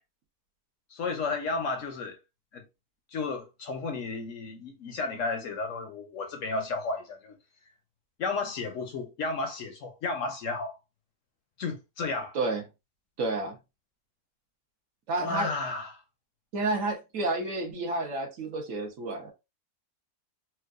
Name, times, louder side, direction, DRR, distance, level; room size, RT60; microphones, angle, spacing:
voice 1, 0.9-2.2 2.5-2.6 3.1-7.4 8.2-10.8 11.6-12.4 15.2-16.0, left 3 dB, 65° left, 0.9 m, -33 dB
voice 2, 13.2-13.6 15.1-15.5 16.5-19.3, right 2 dB, 60° right, 1.1 m, -30 dB
4.5 x 2.2 x 2.4 m
omnidirectional pair, 1.6 m